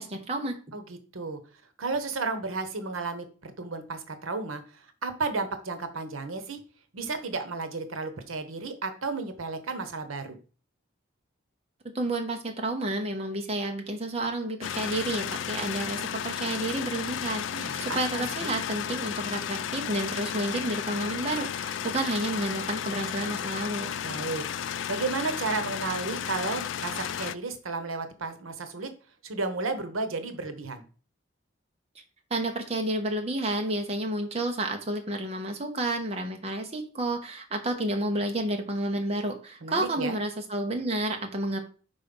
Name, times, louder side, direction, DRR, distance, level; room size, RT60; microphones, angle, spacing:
voice 1, 0.0-0.6 11.9-23.9 32.3-41.6, right 1 dB, 30° right, 3 dB, 0.9 m, -30 dB
voice 2, 0.7-1.4 1.8-6.6 6.9-10.4 17.5-18.5 24.0-24.4 24.9-28.9 29.2-30.8 39.6-40.2, right 3 dB, 90° right, 9 dB, 1.0 m, -33 dB
sound 1, 14.6-27.3, left 9 dB, 65° left, 0.3 m, -33 dB
5.4 x 4.1 x 5.3 m, 0.38 s
head